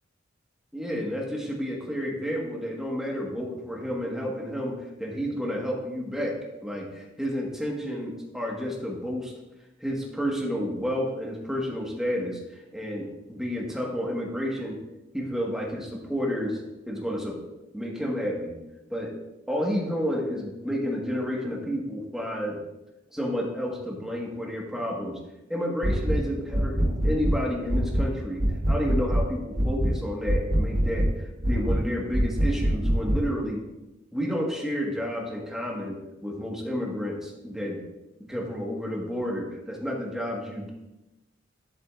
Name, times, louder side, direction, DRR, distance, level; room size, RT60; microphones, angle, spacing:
voice 1, 0.7-6.4 6.6-9.3 9.8-12.4 12.7-14.8 15.1-16.6 16.9-17.4 17.7-18.6 18.9-19.1 19.5-22.6 23.1-25.2 25.5-33.6 34.1-37.8 38.3-40.7, equal, 5° right, -2 dB, 1.4 m, -30 dB
sound 1, 25.8-26.2 26.5-27.4 27.7-28.1 28.4-29.3 29.6-30.0 30.3-31.1 31.4-31.8 32.1-33.2, equal, 50° right, 1.1 m, -24 dB
11.0 x 7.3 x 2.4 m, 0.98 s
head